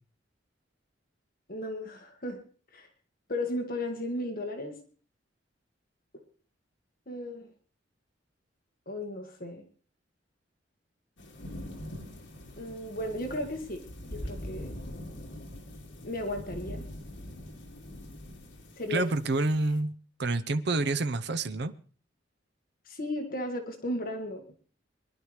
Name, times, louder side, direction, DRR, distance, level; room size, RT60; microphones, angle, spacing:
voice 1, 1.5-2.4 2.7-2.9 3.3-4.8 6.1-6.2 7.1-7.5 8.9-9.6 12.6-13.8 14.1-14.7 16.0-16.8 18.8-19.1 22.9-24.5, left 1 dB, 50° left, 4 dB, 1.8 m, -35 dB
sound 1, 11.2-19.8, left 1 dB, 75° left, 2.3 m, -43 dB
voice 2, 18.9-19.9 20.2-21.7, right 2 dB, 60° right, 12 dB, 0.7 m, -28 dB
23.0 x 11.0 x 3.2 m, 0.41 s
head